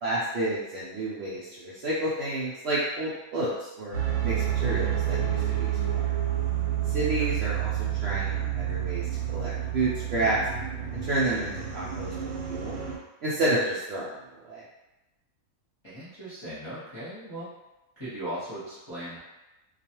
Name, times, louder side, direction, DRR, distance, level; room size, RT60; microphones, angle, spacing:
voice 1, 0.0-4.0 4.2-6.1 6.9-9.1 9.3-10.4 10.9-12.1 12.5-12.8 13.2-14.2 14.4-14.6, right 2 dB, 70° right, -8 dB, 0.6 m, -30 dB
sound 1, 3.9-13.0, right 11 dB, 90° right, 1.1 m, -29 dB
voice 2, 15.8-17.5 18.0-19.2, right 1 dB, 20° left, -12 dB, 0.8 m, -38 dB
2.4 x 2.3 x 2.8 m, 1.0 s
omnidirectional pair, 1.5 m